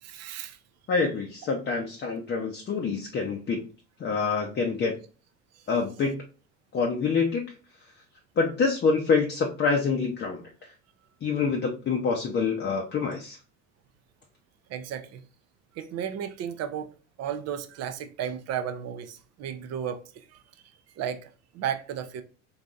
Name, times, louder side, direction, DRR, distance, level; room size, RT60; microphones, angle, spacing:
voice 1, 0.0-0.6 14.7-15.2 15.7-16.9 17.2-20.4 21.0-21.3 21.5-22.2, right 9 dB, 45° right, 0.5 m, -34 dB
voice 2, 0.9-3.6 4.0-5.0 5.7-6.2 6.7-7.4 8.4-10.4 11.2-13.4, left 4 dB, 30° left, 0.6 m, -26 dB
3.9 x 2.6 x 2.3 m
hypercardioid pair, 70°, 37 cm